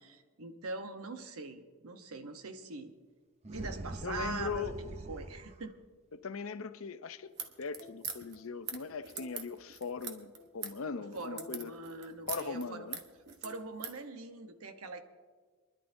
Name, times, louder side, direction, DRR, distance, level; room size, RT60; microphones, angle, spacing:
voice 1, 0.0-2.9 3.5-4.7 5.1-5.7 11.0-12.9 13.4-15.0, right 3 dB, 80° right, 1.0 m, -43 dB
sound 1, 3.4-5.6, right 2 dB, 30° right, 0.6 m, -43 dB
voice 2, 4.0-4.8 6.1-7.3 7.6-11.7 12.3-13.0, left 5 dB, 70° left, 0.6 m, -39 dB
sound 2, 7.3-14.0, right 6 dB, 45° right, 1.1 m, -43 dB
27.5 x 11.0 x 2.7 m
head